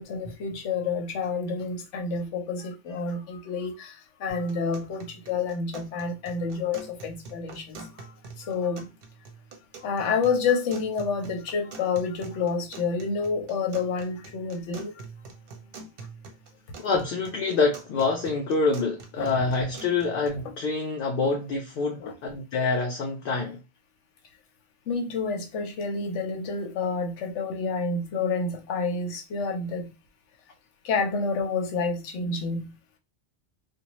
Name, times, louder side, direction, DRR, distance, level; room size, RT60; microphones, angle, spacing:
voice 1, 0.0-8.9 9.8-14.9 19.2-19.3 22.0-22.1 24.9-29.9 30.8-32.7, left 4 dB, 75° left, 1.0 m, -29 dB
sound 1, 4.3-20.3, right 4 dB, 60° right, 0.7 m, -46 dB
voice 2, 16.8-23.6, left 4 dB, 60° left, 0.6 m, -26 dB
2.6 x 2.1 x 2.9 m
omnidirectional pair, 1.2 m